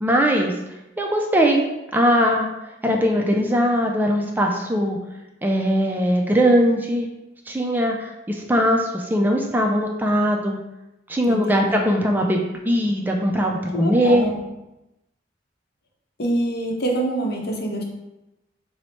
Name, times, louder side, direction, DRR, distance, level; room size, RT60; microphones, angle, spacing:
voice 1, 0.0-0.5 1.0-1.7 1.9-2.5 2.8-5.0 5.4-7.1 7.5-10.6 11.1-14.3, equal, 10° right, 1 dB, 0.3 m, -20 dB
voice 2, 11.3-11.7 13.7-14.4 16.2-17.8, right 1 dB, 60° left, 0 dB, 0.7 m, -25 dB
4.1 x 2.1 x 4.3 m, 0.95 s
head